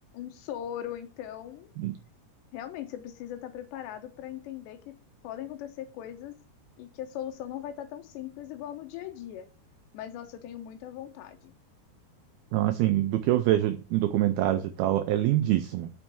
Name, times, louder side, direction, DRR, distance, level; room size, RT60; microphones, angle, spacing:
voice 1, 0.1-1.7 2.5-4.9 5.2-6.4 6.8-9.5 9.9-11.5, left 11 dB, 85° left, 7 dB, 3.2 m, -39 dB
voice 2, 12.5-15.9, right 13 dB, 80° right, 8 dB, 2.2 m, -25 dB
6.3 x 5.8 x 6.9 m, 0.36 s
omnidirectional pair, 5.0 m